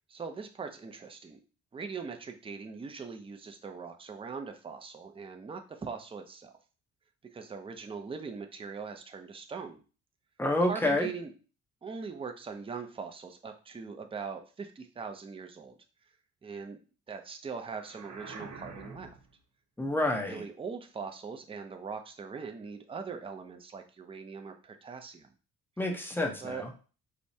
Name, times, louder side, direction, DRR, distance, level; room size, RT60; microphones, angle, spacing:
voice 1, 0.1-1.4 1.7-6.5 7.2-9.8 10.7-11.3 11.8-15.8 16.4-16.8 17.1-19.2 20.2-25.3 26.4-26.6, right 5 dB, 20° right, 5 dB, 0.5 m, -41 dB
voice 2, 10.4-11.1 19.8-20.4 25.8-26.7, left 1 dB, 5° left, 2 dB, 0.8 m, -28 dB
sound 1, 17.7-19.3, right 4 dB, 75° right, 0.9 m, -46 dB
4.5 x 2.1 x 2.7 m, 0.35 s
cardioid pair, 90°, 30 cm